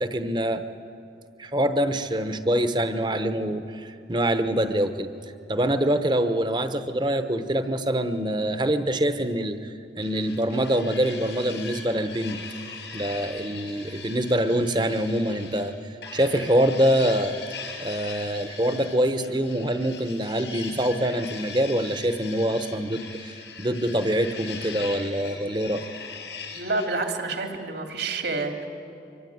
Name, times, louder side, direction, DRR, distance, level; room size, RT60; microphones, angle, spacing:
voice 1, 0.0-0.6 1.4-5.1 5.5-12.4 12.9-15.7 16.1-17.4 17.8-25.8, right 1 dB, 25° right, 9 dB, 1.0 m, -25 dB
sound 1, 10.0-15.7 16.0-26.9, left 5 dB, 80° left, 6.1 m, -40 dB
voice 2, 26.5-28.7, right 3 dB, 75° right, 3 dB, 2.7 m, -28 dB
24.5 x 23.5 x 9.5 m, 2.7 s
head